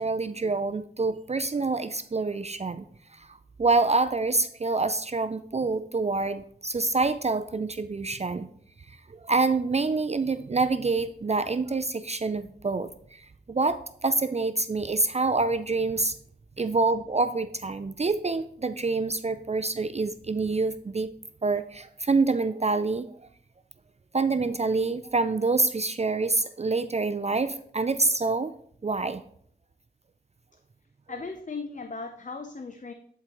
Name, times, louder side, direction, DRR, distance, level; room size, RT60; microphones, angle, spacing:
voice 1, 0.0-2.9 3.1-8.5 8.9-16.2 16.6-21.1 21.4-23.1 24.1-28.5 28.8-29.2, right 3 dB, 40° right, 11 dB, 0.4 m, -26 dB
voice 2, 31.1-32.9, left 4 dB, 45° left, 6 dB, 0.6 m, -37 dB
11.0 x 4.7 x 3.0 m, 0.63 s
wide cardioid pair, 55°, 18 cm